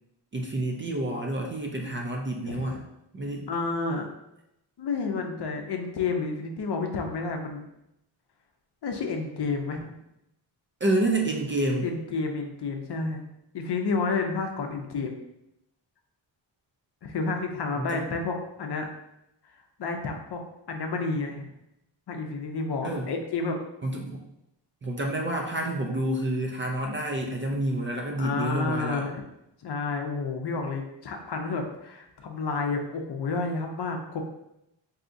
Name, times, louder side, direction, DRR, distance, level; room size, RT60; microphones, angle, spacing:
voice 1, 0.3-2.8 3.1-3.5 10.8-11.9 17.8-18.0 22.8-23.1 23.8-24.2 24.8-29.1, right 1 dB, 30° right, 1 dB, 0.4 m, -28 dB
voice 2, 2.4-2.8 3.5-4.1 4.8-7.6 8.8-10.0 11.8-13.2 13.5-15.2 17.0-18.9 19.8-20.4 20.7-21.5 22.1-23.6 28.2-29.2 29.6-34.2, left 4 dB, 60° left, 3 dB, 0.6 m, -30 dB
3.6 x 2.7 x 2.5 m, 0.84 s
wide cardioid pair, 110°, 46 cm